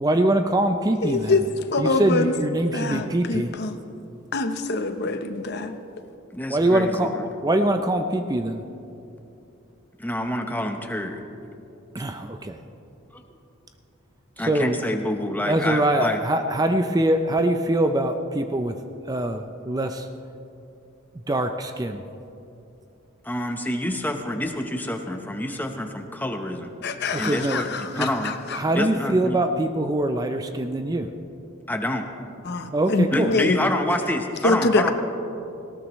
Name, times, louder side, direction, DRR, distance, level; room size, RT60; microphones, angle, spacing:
voice 1, 0.0-1.4 1.8-3.5 6.5-8.6 11.9-12.3 14.4-14.8 15.5-18.8 19.1-20.1 21.3-22.0 27.1-27.6 28.0-31.1 32.7-33.3, right 1 dB, 20° right, 7 dB, 0.4 m, -23 dB
voice 2, 1.0-2.3 2.7-3.8 4.3-5.8 26.8-28.6 32.4-33.6 34.4-34.9, left 3 dB, 50° left, 8 dB, 0.8 m, -24 dB
voice 3, 6.3-7.3 10.0-11.2 14.4-16.2 23.2-26.7 27.2-28.4 28.7-29.4 31.7-32.1 33.1-34.9, left 1 dB, 10° left, 4 dB, 0.9 m, -27 dB
19.0 x 17.5 x 3.1 m, 2.8 s
head